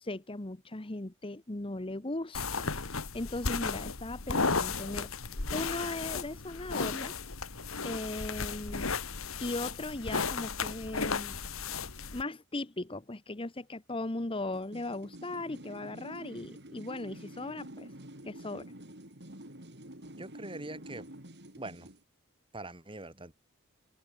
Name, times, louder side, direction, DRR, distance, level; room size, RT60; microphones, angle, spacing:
voice 1, 0.0-5.1 5.5-7.1 7.8-8.9 9.4-11.4 12.1-17.9 18.2-18.7, left 2 dB, 25° left, 1.1 m, -38 dB
sound 1, 2.3-12.2, left 4 dB, 80° left, 2.1 m, -34 dB
sound 2, 14.5-22.0, right 1 dB, 55° right, 6.2 m, -48 dB
voice 2, 20.2-21.1 21.6-21.9 22.5-23.3, right 2 dB, 25° right, 3.9 m, -43 dB
head